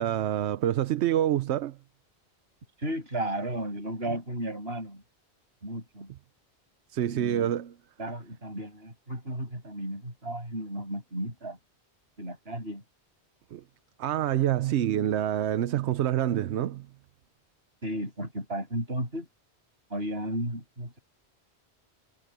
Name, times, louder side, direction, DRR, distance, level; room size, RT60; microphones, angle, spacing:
voice 1, 0.0-1.8 6.9-7.7 13.5-13.6 14.0-16.9, right 11 dB, 80° right, 0.9 m, -27 dB
voice 2, 2.8-5.0 5.6-6.1 7.0-7.5 8.0-11.6 12.2-12.8 17.8-19.3 19.9-21.0, right 1 dB, 65° right, 8.4 m, -34 dB
omnidirectional pair, 1.1 m